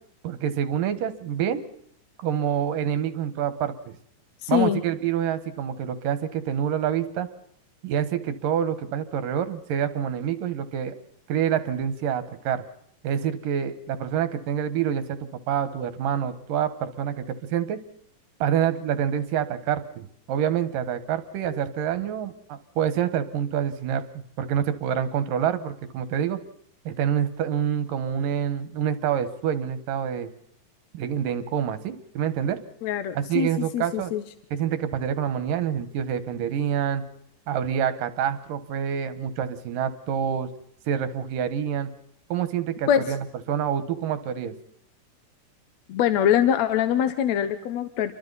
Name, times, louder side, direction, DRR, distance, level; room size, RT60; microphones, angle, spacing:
voice 1, 0.2-1.6 2.2-3.7 4.5-7.3 7.8-10.9 11.3-12.6 13.0-17.8 18.4-24.0 24.4-26.4 26.9-30.3 30.9-32.6 33.2-34.1 34.5-37.0 37.5-40.5 40.9-41.9 42.3-43.2 43.5-44.5, right 9 dB, 80° right, 11 dB, 3.0 m, -27 dB
voice 2, 4.4-4.8 32.8-34.2 42.9-43.1 45.9-48.1, left 10 dB, 65° left, 9 dB, 2.0 m, -23 dB
29.0 x 23.5 x 4.1 m, 0.69 s
omnidirectional pair, 3.9 m